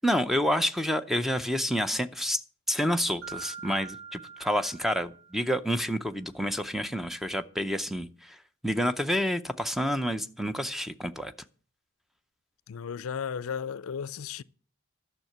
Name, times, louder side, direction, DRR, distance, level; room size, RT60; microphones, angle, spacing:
voice 1, 0.0-2.4 2.7-8.4 8.6-11.3, equal, ahead, 0.6 m, -28 dB
Mallet percussion, 3.2-5.8, right 6 dB, 75° right, 3.8 m, -44 dB
voice 2, 12.7-14.4, left 7 dB, 70° left, 0.4 m, -34 dB
12.0 x 6.5 x 7.9 m
head